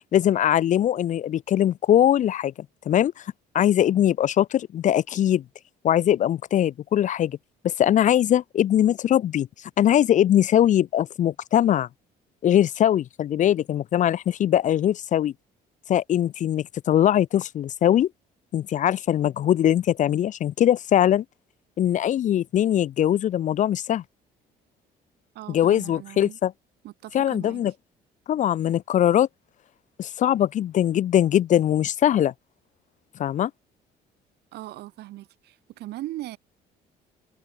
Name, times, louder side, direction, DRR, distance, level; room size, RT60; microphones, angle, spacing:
voice 1, 0.1-2.5 2.9-3.2 3.5-5.4 5.8-7.4 7.6-9.5 9.8-11.9 12.4-15.3 15.9-18.1 18.5-21.2 21.8-24.0 25.5-26.5 27.1-27.7 28.3-29.3 30.0-32.3 33.2-33.5, left 11 dB, 45° left, 0.5 m, -21 dB
voice 2, 25.3-26.4 26.8-27.6 34.5-36.4, right 16 dB, 75° right, 2.4 m, -39 dB
cardioid pair, 110°, 17 cm